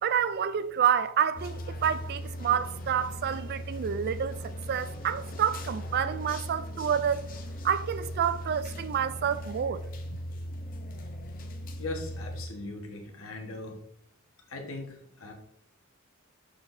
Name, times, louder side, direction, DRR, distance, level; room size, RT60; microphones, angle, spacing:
voice 1, 0.0-7.2 7.6-9.8, right 8 dB, 50° right, 0.3 m, -28 dB
sound 1, 1.3-12.5, equal, 40° left, 0.7 m, -38 dB
voice 2, 11.8-13.7 14.5-15.3, left 2 dB, 65° left, 1.4 m, -39 dB
6.7 x 5.9 x 2.7 m
head